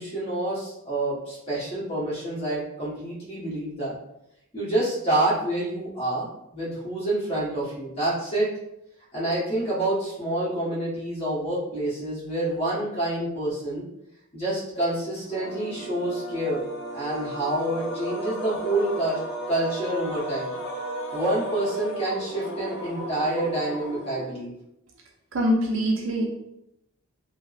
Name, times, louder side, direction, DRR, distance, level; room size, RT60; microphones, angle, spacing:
voice 1, 0.0-4.0 4.5-6.3 6.5-8.5 9.1-13.8 14.3-16.6 16.9-19.2 19.5-20.5 21.1-24.5, right 1 dB, 25° left, -8 dB, 1.1 m, -27 dB
sound 1, 15.2-24.6, right 1 dB, 55° left, 0.7 m, -34 dB
voice 2, 25.3-26.2, equal, 60° right, 0 dB, 0.4 m, -23 dB
3.2 x 2.0 x 2.3 m, 0.82 s
head